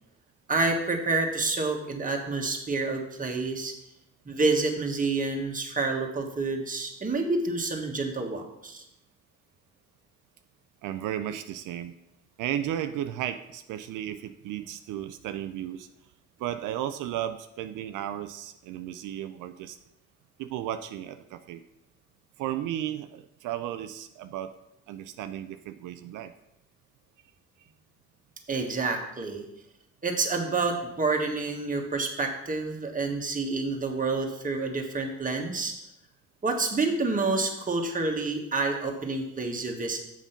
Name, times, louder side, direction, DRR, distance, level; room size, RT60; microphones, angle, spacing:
voice 1, 0.5-3.7 4.2-8.8 28.5-29.5 30.0-35.7 36.4-40.0, right 3 dB, 25° right, 2 dB, 1.5 m, -28 dB
voice 2, 10.8-11.9 12.4-15.9 16.4-19.8 20.4-21.6 22.4-24.5 24.9-26.3, right 11 dB, 85° right, 9 dB, 0.5 m, -34 dB
7.3 x 5.4 x 5.7 m, 0.84 s
cardioid pair, 90°, 30 cm